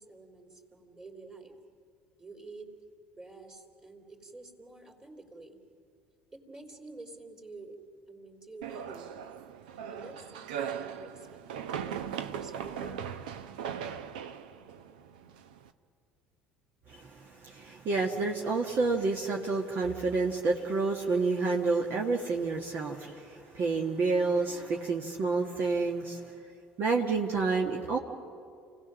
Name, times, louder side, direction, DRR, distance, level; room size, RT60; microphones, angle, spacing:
voice 1, 0.0-1.5 2.2-2.7 3.2-5.6 6.3-7.8 8.1-9.3 9.9-13.2, right 3 dB, 15° right, 3 dB, 3.5 m, -49 dB
sound 1, 8.6-15.7, right 8 dB, 80° right, 0.8 m, -39 dB
voice 2, 16.9-26.2 26.8-28.0, right 4 dB, 50° right, 0 dB, 1.7 m, -29 dB
29.0 x 17.5 x 6.4 m, 2.3 s
hypercardioid pair, 65°, 5 cm